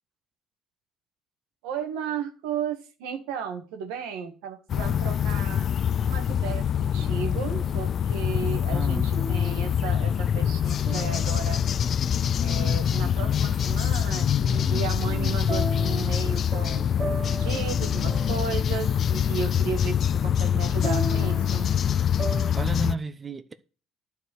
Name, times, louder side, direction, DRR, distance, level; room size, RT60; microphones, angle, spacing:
voice 1, 1.6-5.7 6.0-11.6 12.4-21.7, right 7 dB, 90° right, 1.8 m, -34 dB
sound 1, 4.7-23.0, left 8 dB, 50° left, 0.4 m, -25 dB
sound 2, 6.8-8.1 9.2-12.4 15.5-22.5, right 3 dB, 45° right, 1.9 m, -39 dB
voice 2, 8.7-9.2 15.0-15.7 22.5-23.5, right 4 dB, 30° right, 0.9 m, -34 dB
11.0 x 4.8 x 8.1 m
supercardioid pair, 95°, 0 cm